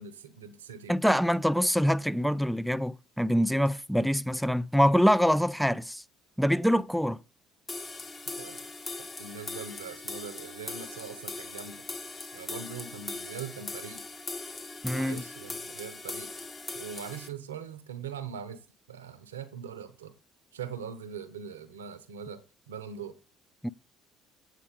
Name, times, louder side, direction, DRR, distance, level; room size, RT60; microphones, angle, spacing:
voice 1, 0.0-0.9 8.3-8.7 9.0-11.8 12.3-14.0 14.9-16.3 16.7-20.1 20.5-23.2, right 7 dB, 80° right, 0.9 m, -42 dB
voice 2, 0.9-6.0 6.4-7.2 14.8-15.2 23.6-23.7, equal, ahead, 0.5 m, -25 dB
sound 1, 7.7-17.3, left 3 dB, 30° left, 1.8 m, -40 dB
8.4 x 7.9 x 5.1 m
figure-of-eight pair, 55°, 0 cm